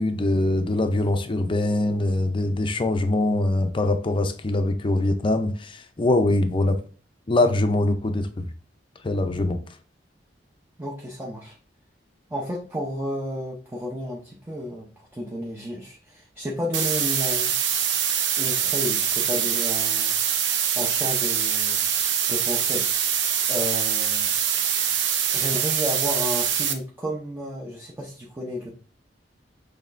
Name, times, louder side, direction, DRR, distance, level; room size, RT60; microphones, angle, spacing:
voice 1, 0.0-6.8 7.3-8.5 9.0-9.6, left 2 dB, 30° left, 0.5 m, -23 dB
voice 2, 10.8-11.6 12.3-17.5 18.4-20.2 20.7-21.9 22.3-22.9 23.5-24.3 25.3-28.7, equal, 15° right, 0.7 m, -32 dB
sound 1, 16.7-26.7, right 8 dB, 75° right, 0.6 m, -24 dB
6.3 x 3.2 x 2.5 m
head